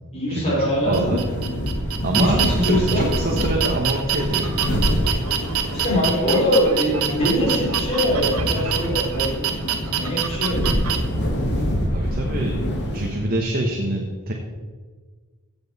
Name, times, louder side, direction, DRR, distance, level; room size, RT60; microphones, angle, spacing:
voice 1, 0.1-1.1 2.1-3.0 5.7-9.7 9.9-10.7, equal, 30° left, -5 dB, 3.1 m, -22 dB
sound 1, 0.7-13.4, equal, 50° left, 1.9 m, -26 dB
voice 2, 0.9-1.2 2.0-4.5 11.9-12.6 12.9-14.3, right 1 dB, 40° right, 0 dB, 1.2 m, -25 dB
sound 2, 0.9-11.0, right 9 dB, 80° right, 1.2 m, -26 dB
16.0 x 7.2 x 4.2 m, 1.5 s
head